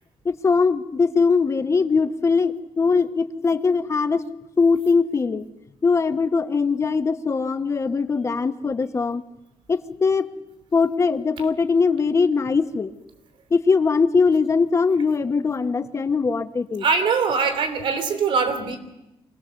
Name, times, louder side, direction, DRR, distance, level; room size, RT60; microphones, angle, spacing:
voice 1, 0.2-4.2 4.6-5.5 5.8-9.2 9.7-10.3 10.7-12.9 13.5-16.8, left 4 dB, 30° left, 11 dB, 1.1 m, -21 dB
voice 2, 16.8-18.8, right 5 dB, 75° right, 7 dB, 3.0 m, -22 dB
25.0 x 17.5 x 7.0 m, 0.93 s
cardioid pair, 115°, 9 cm